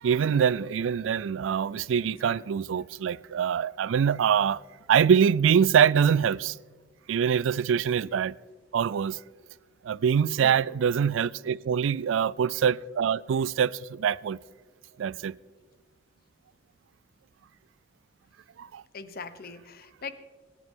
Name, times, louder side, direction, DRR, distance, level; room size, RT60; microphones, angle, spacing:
voice 1, 0.0-4.6 4.9-6.6 7.1-8.4 8.7-9.2 9.8-14.4 15.0-15.4 18.6-18.8, right 7 dB, 80° right, 0.3 m, -24 dB
voice 2, 2.0-2.4 10.4-10.6 18.9-20.1, left 4 dB, 50° left, 0.9 m, -41 dB
25.5 x 11.0 x 3.7 m
head